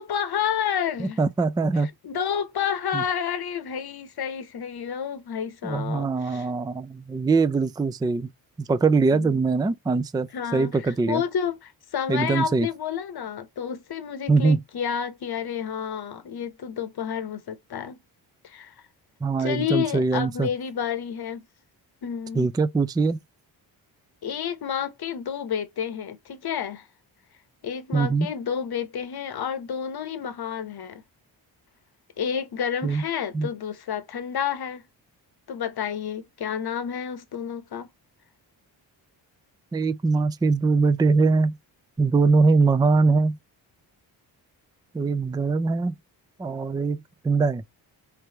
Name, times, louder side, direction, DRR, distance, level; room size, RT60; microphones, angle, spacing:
voice 1, 0.0-1.2 1.6-6.5 9.1-9.4 10.3-18.0 18.4-18.7 19.4-21.5 22.0-22.5 24.2-26.9 27.6-31.0 32.2-34.8 35.5-37.9, left 8 dB, 50° left, 1.0 m, -30 dB
voice 2, 1.0-1.9 2.9-3.0 5.6-8.3 8.6-11.2 12.1-12.7 14.3-14.6 19.2-20.5 22.4-23.2 27.9-28.3 32.8-33.0 33.3-33.5 39.7-41.5 42.0-43.4 44.9-45.9 46.4-47.0 47.2-47.6, right 4 dB, 10° right, 0.4 m, -22 dB
3.3 x 3.2 x 2.8 m
supercardioid pair, 45°, 50 cm